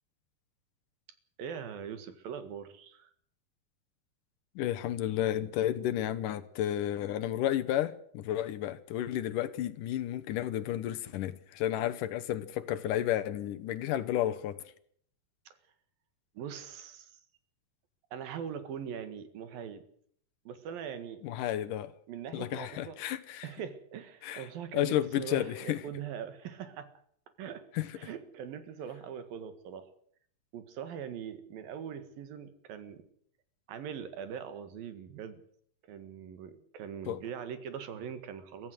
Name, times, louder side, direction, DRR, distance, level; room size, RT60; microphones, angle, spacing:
voice 1, 1.4-3.1 15.5-15.6 16.4-17.2 18.1-19.8 20.5-21.2 22.1-23.0 23.4-26.9 27.4-27.7 28.0-29.9 30.5-33.0 33.7-35.4 35.8-38.7, right 8 dB, 90° right, 3.6 m, -42 dB
voice 2, 4.6-14.6 21.2-21.9 22.3-23.5 24.2-24.5 24.7-25.8 27.7-27.9 37.1-37.2, left 12 dB, 75° left, 2.5 m, -32 dB
23.5 x 14.5 x 7.9 m
omnidirectional pair, 4.0 m